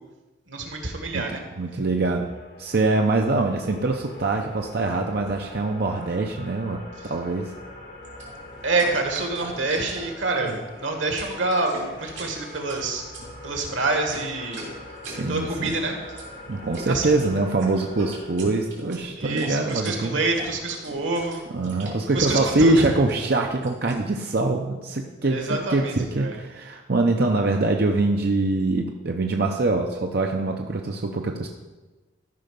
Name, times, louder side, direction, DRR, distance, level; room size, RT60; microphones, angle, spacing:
voice 1, 0.5-1.4 8.6-13.0 13.4-14.6 15.1-16.0 16.9-17.1 19.2-21.4 22.1-22.9 25.3-26.4, right 3 dB, 90° right, 3 dB, 1.8 m, -27 dB
voice 2, 1.6-2.3 2.6-6.8 7.1-7.5 15.0-15.7 16.5-20.2 21.5-31.5, right 2 dB, 55° right, 2 dB, 0.6 m, -24 dB
sound 1, 1.9-18.6, left 1 dB, 65° left, 3.4 m, -43 dB
sound 2, 8.0-24.0, right 2 dB, 70° right, 3.0 m, -41 dB
13.5 x 5.6 x 5.2 m, 1.2 s
head